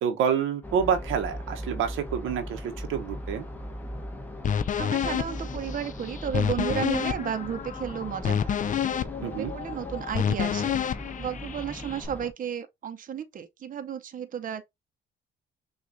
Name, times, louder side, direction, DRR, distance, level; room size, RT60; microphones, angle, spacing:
voice 1, 0.0-3.4 9.2-9.5, right 7 dB, 90° right, 0.9 m, -28 dB
sound 1, 0.6-12.3, left 1 dB, 10° left, 0.9 m, -39 dB
sound 2, 4.4-12.1, left 8 dB, 40° left, 0.5 m, -29 dB
voice 2, 4.8-8.5 9.2-10.7 11.2-14.8, right 8 dB, 45° right, 0.7 m, -33 dB
6.2 x 2.4 x 2.5 m
cardioid pair, 90°, 20 cm